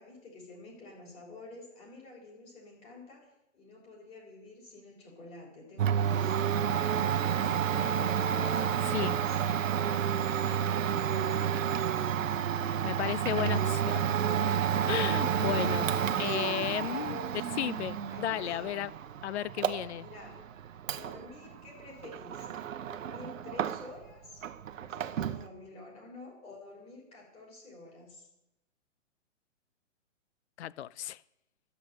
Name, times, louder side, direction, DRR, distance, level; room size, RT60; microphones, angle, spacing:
voice 1, 0.0-3.3 3.5-7.2 8.4-11.7 12.1-12.6 16.5-17.8 18.1-18.8 20.0-20.5 20.9-22.5 22.8-24.5 24.8-28.3, left 2 dB, 15° left, 3.5 m, -50 dB
Domestic sounds home sounds, 5.8-24.1 24.4-25.5, right 8 dB, 85° right, 0.9 m, -30 dB
voice 2, 8.9-9.2 12.8-14.0 14.9-15.9 16.2-17.2 17.6-18.9 19.2-20.1 30.6-31.2, left 12 dB, 60° left, 0.5 m, -34 dB
12.5 x 8.5 x 6.6 m
hypercardioid pair, 160°, 38 cm